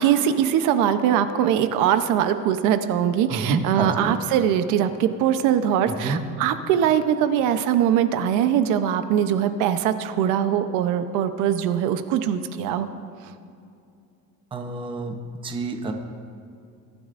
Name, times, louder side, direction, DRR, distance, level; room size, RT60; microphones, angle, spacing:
voice 1, 0.0-12.9, right 9 dB, 65° right, 10 dB, 0.8 m, -22 dB
voice 2, 3.3-4.1 5.9-6.2 14.5-15.1 15.4-15.9, right 3 dB, 15° right, 4 dB, 0.7 m, -28 dB
21.0 x 13.0 x 2.5 m, 2.5 s
cardioid pair, 165°, 33 cm